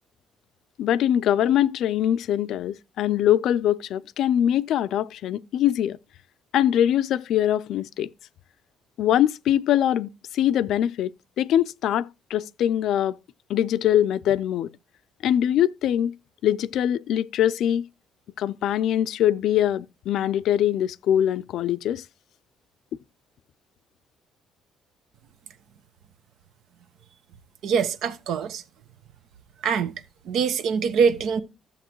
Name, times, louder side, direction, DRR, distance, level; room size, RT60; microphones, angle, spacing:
voice 1, 0.8-6.0 6.5-8.1 9.0-11.1 11.4-13.2 13.5-14.7 15.2-16.1 16.4-17.8 18.4-22.0, left 11 dB, 70° left, 0.4 m, -23 dB
voice 2, 27.6-28.6 29.6-29.9 30.3-31.4, right 6 dB, 70° right, 1.0 m, -23 dB
13.5 x 7.2 x 3.0 m
cardioid pair, 110°, 0 cm